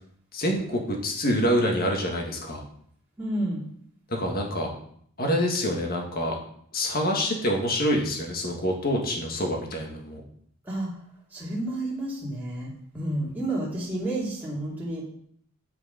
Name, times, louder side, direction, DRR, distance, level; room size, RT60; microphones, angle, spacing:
voice 1, 0.3-2.6 4.1-4.7 5.2-6.4 6.7-10.2, equal, 45° left, 1 dB, 1.7 m, -26 dB
voice 2, 3.2-3.7 10.6-10.9 11.3-15.1, right 1 dB, 10° right, -7 dB, 2.2 m, -30 dB
9.8 x 5.1 x 5.0 m, 0.64 s
head